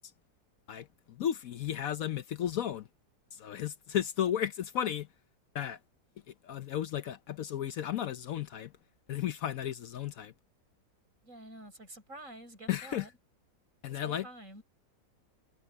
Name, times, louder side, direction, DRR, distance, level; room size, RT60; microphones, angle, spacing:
voice 1, 0.7-2.9 3.3-5.1 5.5-5.8 6.4-8.7 9.1-10.3 12.7-13.0 13.8-14.3, left 10 dB, 65° left, 0.9 m, -34 dB
voice 2, 11.2-13.1 13.9-14.6, right 1 dB, 45° right, 7.4 m, -49 dB
omnidirectional pair, 2.0 m